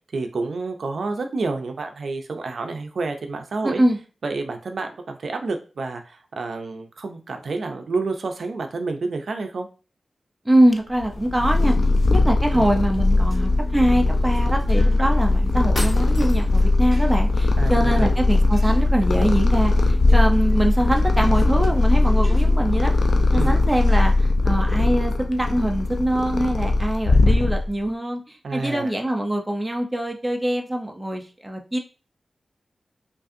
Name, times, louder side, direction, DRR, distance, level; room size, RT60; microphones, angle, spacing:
voice 1, 0.1-3.8 4.2-9.7 12.5-12.6 17.6-18.1 23.3-23.6 28.4-28.9, right 3 dB, 65° right, 5 dB, 0.5 m, -29 dB
voice 2, 3.6-4.0 10.4-11.8 12.1-22.9 23.3-31.8, right 1 dB, 10° right, 2 dB, 0.5 m, -23 dB
Purr, 11.0-27.8, left 2 dB, 75° left, 0.5 m, -19 dB
sound 1, 12.5-24.1, right 2 dB, 25° right, 1.6 m, -40 dB
sound 2, 15.7-16.7, equal, 20° left, 1.3 m, -33 dB
5.2 x 2.4 x 2.6 m, 0.35 s
wide cardioid pair, 155°, 0 cm